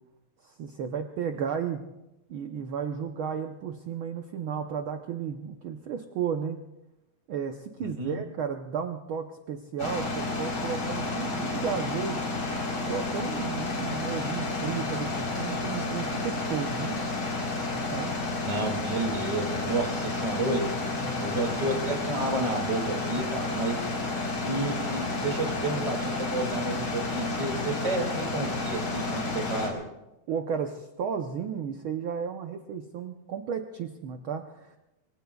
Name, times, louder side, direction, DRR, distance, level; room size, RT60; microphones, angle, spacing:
voice 1, 0.4-1.8 2.3-6.6 7.3-12.3 12.9-17.0 17.9-18.1 20.9-21.4 23.2-23.3 30.3-34.8, right 7 dB, 75° right, 5 dB, 1.2 m, -33 dB
voice 2, 7.8-8.2 18.4-20.6 21.2-23.8 24.4-29.8, right 2 dB, 10° right, 2 dB, 2.1 m, -31 dB
sound 1, 9.8-29.7, left 3 dB, 80° left, 5.5 m, -31 dB
25.5 x 24.0 x 2.4 m, 0.96 s
omnidirectional pair, 3.4 m